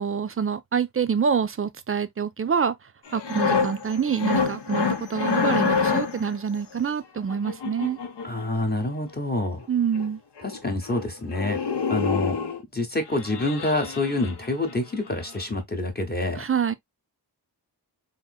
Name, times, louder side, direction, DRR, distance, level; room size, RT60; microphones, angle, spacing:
voice 1, 0.0-2.8 3.1-8.0 9.7-10.2 16.4-16.7, right 6 dB, 35° right, 0.4 m, -26 dB
sound 1, 3.1-6.3 7.3-8.5 9.6-9.7 10.0-10.1 10.4-10.6 10.9-11.1 11.3-12.6 13.1-14.7 15.1-15.3, left 5 dB, 80° left, 0.7 m, -27 dB
voice 2, 8.2-9.7 10.4-11.6 11.9-12.4 12.7-16.4, left 2 dB, 25° left, 0.8 m, -27 dB
3.6 x 2.6 x 2.2 m
wide cardioid pair, 65°, 41 cm